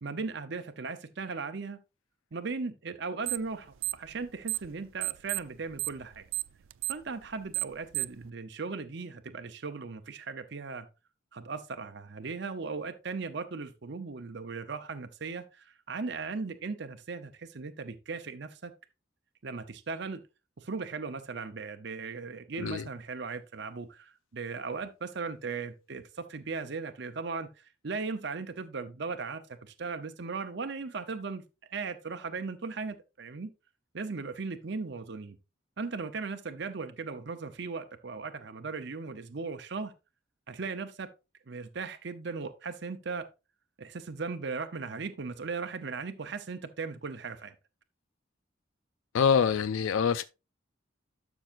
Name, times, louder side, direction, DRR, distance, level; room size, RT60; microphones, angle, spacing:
voice 1, 0.0-1.8 2.3-6.2 6.9-10.9 11.3-18.7 19.4-20.2 20.6-31.4 31.7-33.5 33.9-35.4 35.8-39.9 40.5-41.1 41.5-43.3 43.8-47.5, right 4 dB, 60° right, 0.7 m, -37 dB
sound 1, 3.3-3.5 3.8-4.7 5.0-8.3, right 18 dB, 85° right, 0.4 m, -32 dB
voice 2, 49.1-50.2, left 6 dB, 90° left, 0.4 m, -25 dB
12.0 x 6.1 x 2.5 m
head